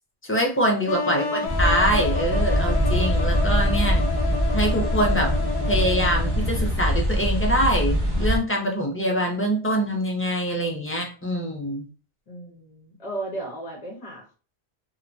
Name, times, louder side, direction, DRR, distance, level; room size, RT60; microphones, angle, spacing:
voice 1, 0.2-4.0 4.5-5.3 5.7-11.9, equal, 15° left, 0 dB, 0.4 m, -24 dB
sound 1, 0.9-6.7, left 4 dB, 75° left, 0.8 m, -30 dB
voice 2, 1.0-1.4 12.3-14.3, right 2 dB, 40° left, -1 dB, 0.7 m, -35 dB
sound 2, 1.5-8.4, equal, 25° right, 0.7 m, -23 dB
2.9 x 2.1 x 2.5 m, 0.37 s
omnidirectional pair, 1.1 m